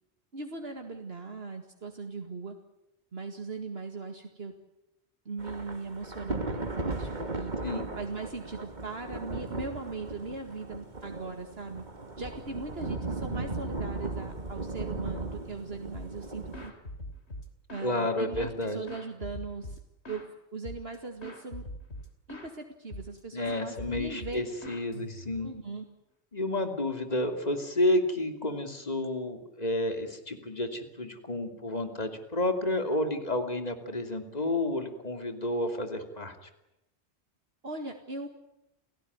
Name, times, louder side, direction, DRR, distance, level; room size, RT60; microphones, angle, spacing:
voice 1, 0.3-2.6 3.1-4.5 5.3-7.5 8.0-11.8 12.2-16.7 17.7-19.8 20.1-20.3 20.5-21.7 22.3-24.4 25.4-25.8 37.6-38.3, right 3 dB, 65° right, 4 dB, 2.3 m, -39 dB
Thunder / Rain, 5.4-16.7, right 2 dB, 40° right, 2.1 m, -37 dB
sound 1, 15.9-16.2 16.5-17.9 18.3-20.3 20.6-21.0 21.2-22.5 22.9-23.2 23.4-25.5, left 1 dB, 75° left, 3.4 m, -43 dB
voice 2, 17.8-18.8 23.3-25.5 26.3-36.3, left 1 dB, 35° left, 6 dB, 3.0 m, -30 dB
30.0 x 17.0 x 9.6 m, 0.90 s
omnidirectional pair, 1.1 m